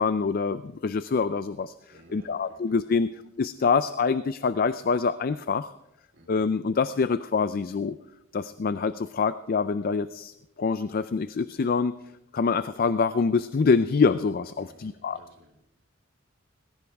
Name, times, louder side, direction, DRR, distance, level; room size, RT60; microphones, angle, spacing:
voice 1, 0.0-1.7 2.1-5.7 6.3-8.0 8.3-11.9 12.3-15.2, left 5 dB, 50° left, 14 dB, 0.4 m, -25 dB
voice 2, 1.9-2.8 6.1-6.4 14.6-15.5, equal, 65° right, -1 dB, 3.6 m, -55 dB
19.0 x 16.0 x 3.4 m, 0.86 s
head